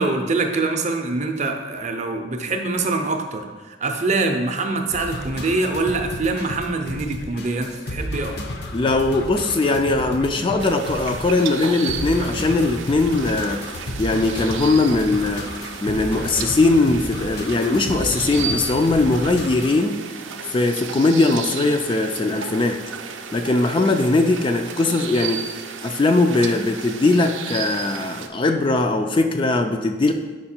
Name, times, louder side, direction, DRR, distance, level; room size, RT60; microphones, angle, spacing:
voice 1, 0.0-8.3, right 3 dB, 40° right, 5 dB, 0.5 m, -24 dB
sound 1, 4.9-19.8, left 1 dB, 60° left, 0.7 m, -32 dB
voice 2, 8.7-13.6 14.0-15.5 15.8-20.0 20.4-22.8 23.3-25.4 25.8-30.1, left 2 dB, 25° left, 5 dB, 0.3 m, -20 dB
sound 2, 10.6-28.3, right 6 dB, 90° right, 0.5 m, -34 dB
5.4 x 4.8 x 4.4 m, 1.3 s
head